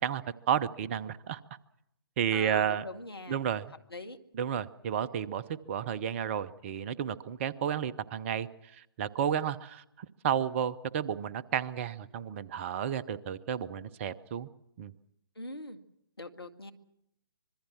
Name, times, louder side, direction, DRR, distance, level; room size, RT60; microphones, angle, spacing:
voice 1, 0.0-1.4 2.2-2.8 3.3-3.7 4.3-14.5 14.8-14.9, right 9 dB, 30° right, 16 dB, 0.8 m, -32 dB
voice 2, 2.3-3.4 3.9-4.2 15.4-15.8 16.2-16.7, left 2 dB, 80° left, 7 dB, 2.0 m, -42 dB
25.5 x 22.0 x 6.1 m, 0.79 s
figure-of-eight pair, 130°, 13 cm